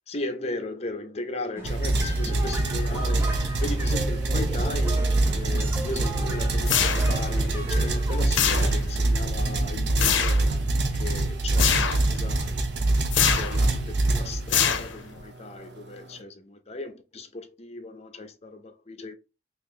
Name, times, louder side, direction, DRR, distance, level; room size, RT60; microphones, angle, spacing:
voice 1, 0.1-12.6 13.3-19.1, left 2 dB, 35° left, 0.5 m, -37 dB
sound 1, 1.6-8.3, right 1 dB, 15° right, 0.6 m, -37 dB
sound 2, 1.6-14.8, right 2 dB, 65° right, 0.7 m, -25 dB
sound 3, 6.7-7.3 8.3-9.0 10.0-10.5 11.6-12.1 13.1-13.6 14.5-15.2, left 8 dB, 80° left, 0.5 m, -24 dB
2.9 x 2.9 x 3.7 m
head